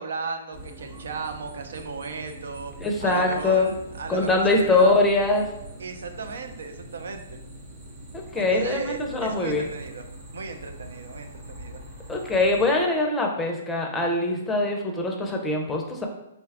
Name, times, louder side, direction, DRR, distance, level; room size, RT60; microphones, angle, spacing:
voice 1, 0.0-2.7 3.0-4.9 5.8-7.4 8.4-10.0 10.3-11.8, right 4 dB, 80° right, 6 dB, 0.4 m, -36 dB
sound 1, 0.5-12.7, right 1 dB, 25° right, 0.8 m, -43 dB
voice 2, 2.8-3.7 4.1-5.4 8.1-9.7 12.1-16.1, left 2 dB, 10° left, 1 dB, 0.5 m, -23 dB
3.8 x 2.3 x 3.4 m, 0.87 s
hypercardioid pair, 145°, 0 cm